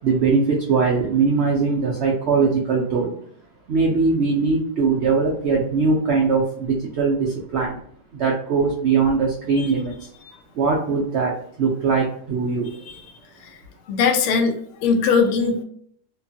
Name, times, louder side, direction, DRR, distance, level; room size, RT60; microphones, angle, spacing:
voice 1, 0.0-3.1 3.7-7.8 8.1-10.1 10.5-12.7, right 4 dB, 85° right, -1 dB, 0.6 m, -21 dB
voice 2, 13.9-15.6, left 5 dB, 70° left, 4 dB, 0.7 m, -20 dB
2.8 x 2.3 x 2.6 m, 0.62 s
omnidirectional pair, 1.7 m